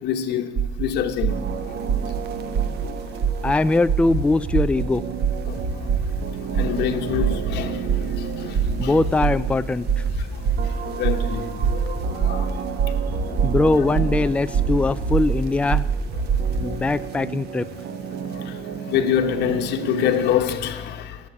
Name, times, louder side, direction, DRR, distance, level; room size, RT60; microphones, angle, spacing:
voice 1, 0.0-0.5 0.8-1.3 2.8-2.9 5.5-5.6 6.6-7.8 8.4-8.5 8.8-8.9 11.0-11.5 11.7-11.9 12.2-12.5 13.7-13.9 16.6-16.8 18.9-21.2, left 9 dB, 80° left, 1.1 m, -25 dB
sound 1, 0.6-0.8 1.2-1.5 1.9-2.2 2.5-2.8 3.2-3.5 3.9-4.2 4.5-4.8 5.2-5.5 5.9-6.2 6.5-6.9 7.2-7.5 7.9-8.2 8.5-8.8 9.2-9.5 9.9-10.1 10.4-10.7 11.0-11.3 11.6-11.9 12.2-12.4 12.8-13.0 13.3-13.6 13.9-14.2 14.5-14.8 15.1-15.4 15.7-16.0 16.3-16.5, right 8 dB, 55° right, 2.6 m, -22 dB
sound 2, 1.3-20.4, right 7 dB, 75° right, 1.1 m, -34 dB
voice 2, 3.4-5.0 8.8-10.0 13.4-15.9 16.6-17.7, left 2 dB, 5° left, 0.4 m, -21 dB
sound 3, 4.1-4.6 5.6-6.1 7.1-7.6 8.6-9.2 10.1-10.7 11.6-12.2 13.1-13.7 14.6-15.2 16.1-16.7 17.6-17.7, right 1 dB, 40° right, 2.2 m, -29 dB
14.5 x 8.5 x 8.6 m
cardioid pair, 110°, 17 cm